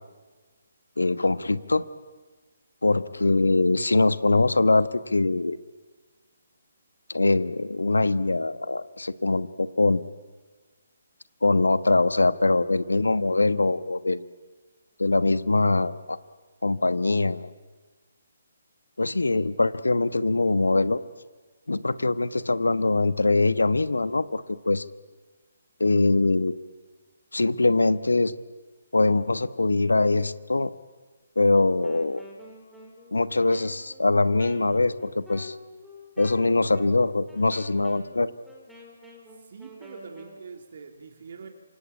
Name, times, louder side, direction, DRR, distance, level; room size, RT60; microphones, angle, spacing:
voice 1, 1.0-1.8 2.8-5.6 7.1-10.0 11.4-14.3 15.0-16.2 16.6-17.5 19.0-21.0 21.7-24.8 25.8-26.5 27.3-28.3 28.9-30.7 31.4-32.2 33.1-35.6 36.2-38.3, left 2 dB, 75° left, 15 dB, 1.2 m, -23 dB
Wind instrument woodwind instrument, 31.8-40.4, left 1 dB, ahead, 5.3 m, -47 dB
voice 2, 39.3-41.5, right 5 dB, 55° right, 5 dB, 2.8 m, -44 dB
27.5 x 24.5 x 8.7 m, 1.3 s
figure-of-eight pair, 140°, 0 cm